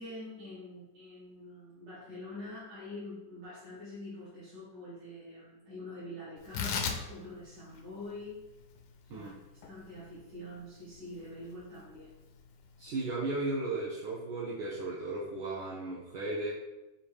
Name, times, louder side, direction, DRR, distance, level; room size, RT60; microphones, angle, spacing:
voice 1, 0.0-8.5 9.1-9.3 9.6-12.3, left 1 dB, 50° right, -11 dB, 1.7 m, -45 dB
Tearing, 6.4-13.1, left 6 dB, 75° left, 1.0 m, -41 dB
voice 2, 12.8-16.5, right 2 dB, 70° right, -4 dB, 1.1 m, -35 dB
5.1 x 2.6 x 3.2 m, 1.0 s
omnidirectional pair, 2.2 m